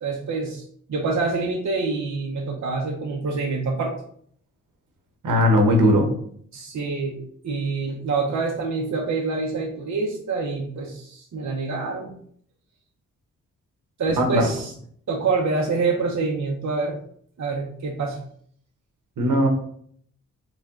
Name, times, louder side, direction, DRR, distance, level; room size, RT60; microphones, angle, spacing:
voice 1, 0.0-0.6 0.9-3.9 6.5-12.2 14.0-14.7 15.1-17.0 17.4-18.2, right 4 dB, 60° right, 0 dB, 0.8 m, -26 dB
voice 2, 5.2-6.1 14.2-14.4 19.2-19.5, equal, 75° right, 3 dB, 1.0 m, -18 dB
4.6 x 2.4 x 3.7 m, 0.62 s
cardioid pair, 65°, 32 cm